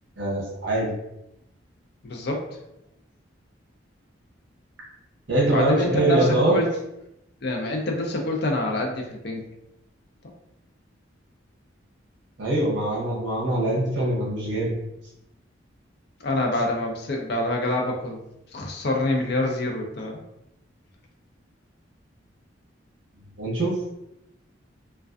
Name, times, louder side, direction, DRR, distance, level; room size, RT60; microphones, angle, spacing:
voice 1, 0.2-0.9 5.3-6.5 12.4-14.8 23.4-23.8, right 1 dB, 70° right, -3 dB, 0.7 m, -23 dB
voice 2, 2.0-2.5 5.5-6.7 7.4-9.4 16.2-18.2 18.5-20.2, left 2 dB, 55° left, 1 dB, 0.5 m, -26 dB
2.4 x 2.2 x 2.3 m, 0.85 s
head